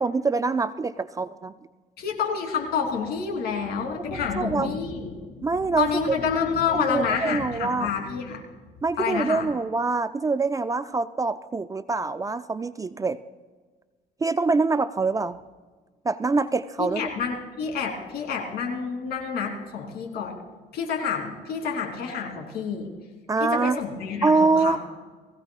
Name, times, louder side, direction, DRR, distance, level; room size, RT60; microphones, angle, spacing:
voice 1, 0.0-1.5 4.1-4.7 5.4-6.2 6.9-7.9 8.8-13.2 14.2-15.4 16.0-17.0 23.3-23.8 24.2-24.8, right 3 dB, 20° right, 12 dB, 0.4 m, -24 dB
voice 2, 2.0-8.4 9.0-9.5 16.8-20.4 20.7-22.9 23.4-24.8, left 6 dB, 65° left, 2 dB, 3.5 m, -28 dB
21.0 x 16.0 x 2.4 m, 1.4 s
cardioid pair, 110°, 17 cm